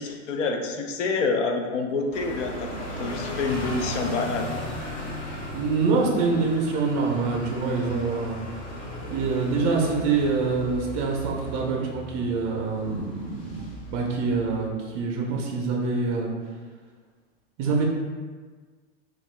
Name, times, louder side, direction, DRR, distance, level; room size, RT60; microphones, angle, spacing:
voice 1, 0.0-4.5, left 4 dB, 80° left, 3 dB, 0.6 m, -27 dB
sound 1, 2.1-14.7, equal, 25° left, 0.4 m, -36 dB
voice 2, 5.5-8.4 9.1-16.3 17.6-17.8, right 4 dB, 35° right, -1 dB, 0.5 m, -25 dB
2.7 x 2.3 x 3.1 m, 1.5 s
hypercardioid pair, 120°, 36 cm